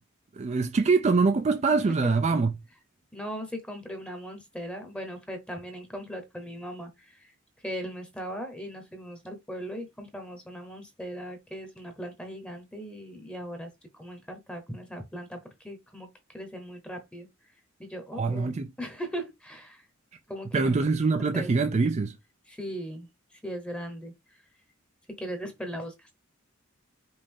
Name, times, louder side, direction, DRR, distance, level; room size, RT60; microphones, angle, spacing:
voice 1, 0.3-2.5 18.1-18.7 20.5-22.2, right 4 dB, 35° right, 0.4 m, -24 dB
voice 2, 3.1-7.3 7.6-17.3 17.8-19.8 20.3-20.8 21.3-21.5 22.5-23.1 23.4-24.4 25.2-26.1, equal, 5° left, 1.0 m, -39 dB
5.3 x 2.6 x 3.5 m
head